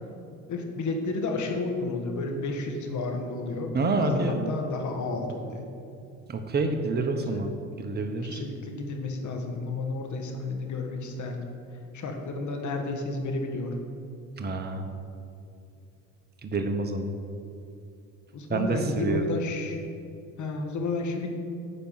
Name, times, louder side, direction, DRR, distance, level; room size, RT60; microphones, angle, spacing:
voice 1, 0.5-3.7 4.0-5.7 7.1-7.4 8.2-11.4 11.9-13.7 18.3-19.8 20.4-21.3, left 3 dB, 45° left, 3 dB, 1.8 m, -31 dB
voice 2, 3.7-4.5 6.3-8.4 14.4-14.9 16.4-17.1 18.5-19.3, right 3 dB, 25° right, 5 dB, 1.1 m, -28 dB
9.8 x 5.4 x 7.5 m, 2.6 s
hypercardioid pair, 80°, 40 cm